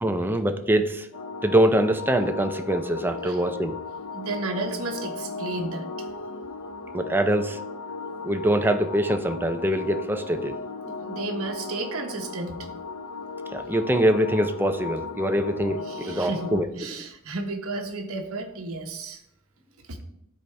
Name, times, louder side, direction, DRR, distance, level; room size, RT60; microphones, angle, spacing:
voice 1, 0.0-1.1 1.4-3.8 6.9-7.6 8.2-10.6 10.8-10.9 13.5-16.7, right 1 dB, 10° right, 6 dB, 0.5 m, -24 dB
sound 1, 1.1-16.6, left 3 dB, 75° left, 0.5 m, -36 dB
voice 2, 4.1-6.1 11.0-12.6 13.6-13.7 15.9-19.2 19.9-20.0, right 2 dB, 65° right, 3 dB, 1.0 m, -33 dB
12.5 x 4.1 x 3.3 m, 0.78 s
head